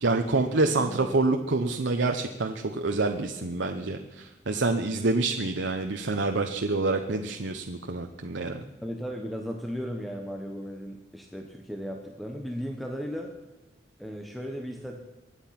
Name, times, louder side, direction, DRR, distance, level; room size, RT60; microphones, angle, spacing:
voice 1, 0.0-8.6, right 3 dB, 85° right, 4 dB, 0.9 m, -27 dB
voice 2, 0.8-1.2 8.8-13.3 14.0-14.9, equal, ahead, 2 dB, 1.1 m, -36 dB
23.5 x 9.0 x 5.9 m, 1.1 s
head